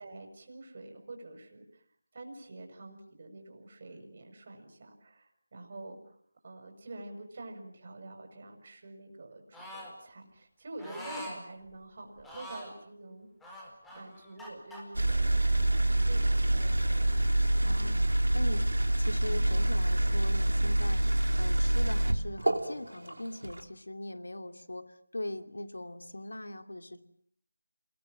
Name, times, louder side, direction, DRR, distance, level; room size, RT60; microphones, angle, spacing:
voice 1, 0.0-1.8 2.1-6.2 6.4-13.3 13.9-17.1 17.5-17.6, right 2 dB, 40° right, 4 dB, 6.5 m, -47 dB
sound 1, 9.5-9.9 10.8-11.4 12.2-12.8 13.4-14.8, equal, 5° left, 4.5 m, -44 dB
sound 2, 14.9-23.6, right 1 dB, 85° right, 3.4 m, -26 dB
voice 2, 17.6-18.1 18.3-18.6 19.0-21.0 21.4-27.0, left 1 dB, 80° left, 9 dB, 2.7 m, -40 dB
28.5 x 21.5 x 7.5 m, 0.67 s
figure-of-eight pair, 165°, 0 cm